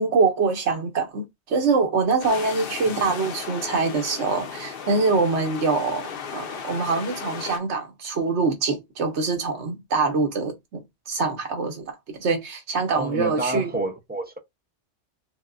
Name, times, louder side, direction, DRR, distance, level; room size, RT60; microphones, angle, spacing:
voice 1, 0.0-13.7, right 4 dB, 80° right, 1.3 m, -24 dB
sound 1, 2.2-7.6, left 7 dB, 60° left, 0.8 m, -35 dB
voice 2, 12.9-14.4, right 2 dB, 10° right, 0.5 m, -29 dB
5.9 x 2.2 x 2.4 m
omnidirectional pair, 1.2 m